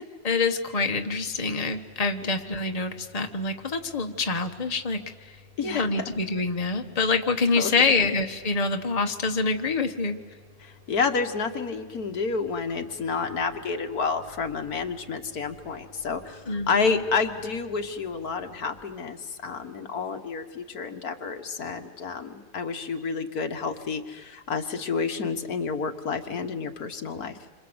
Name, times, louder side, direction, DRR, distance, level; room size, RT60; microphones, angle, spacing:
voice 1, 0.2-5.4 5.6-10.2 16.5-17.0, left 4 dB, 25° left, 5 dB, 1.4 m, -26 dB
Engine, 0.8-18.8, left 2 dB, 85° right, 5.5 m, -53 dB
voice 2, 10.6-27.4, left 5 dB, 80° left, 6 dB, 2.0 m, -30 dB
28.5 x 26.0 x 8.0 m, 1.5 s
omnidirectional pair, 1.6 m